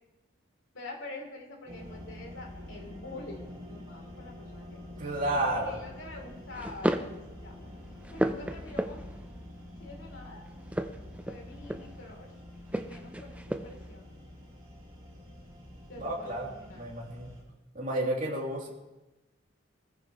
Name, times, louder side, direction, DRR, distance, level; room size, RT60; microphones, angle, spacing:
voice 1, 0.7-5.0 5.3-7.1 7.4-7.5 8.1-9.0 9.8-10.5 11.3-12.3 12.7-14.1 15.9-16.9, left 2 dB, 70° left, 1 dB, 3.2 m, -46 dB
sound 1, 1.7-17.4, left 1 dB, 25° right, 5.7 m, -47 dB
voice 2, 5.0-5.8 16.0-16.5 16.8-17.3 17.7-18.7, right 1 dB, 40° right, -3 dB, 3.0 m, -31 dB
sound 2, 5.3-5.7 6.5-7.2 7.6-9.3 10.6-12.1 12.7-13.9, right 1 dB, 5° right, 0.5 m, -34 dB
23.0 x 15.0 x 3.1 m, 1.0 s
head